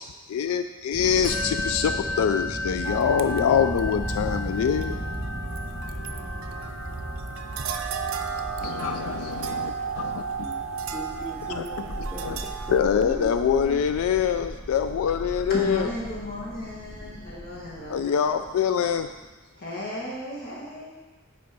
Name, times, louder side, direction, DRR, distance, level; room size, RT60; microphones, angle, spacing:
voice 1, 0.0-5.0 8.6-10.2 11.5-11.6 12.2-12.4 12.7-15.9 17.9-19.1, left 7 dB, 85° left, 10 dB, 0.3 m, -25 dB
sound 1, 0.9-19.2, equal, 15° left, 1.3 m, -37 dB
Musical instrument, 1.2-10.8, left 3 dB, 70° left, 2.6 m, -36 dB
sound 2, 2.8-12.8, right 6 dB, 70° right, 0.5 m, -34 dB
voice 2, 10.4-13.8, right 1 dB, 5° right, -2 dB, 0.7 m, -39 dB
voice 3, 15.5-18.3 19.6-20.9, left 1 dB, 50° left, -5 dB, 2.1 m, -34 dB
7.7 x 4.5 x 5.4 m, 1.2 s
head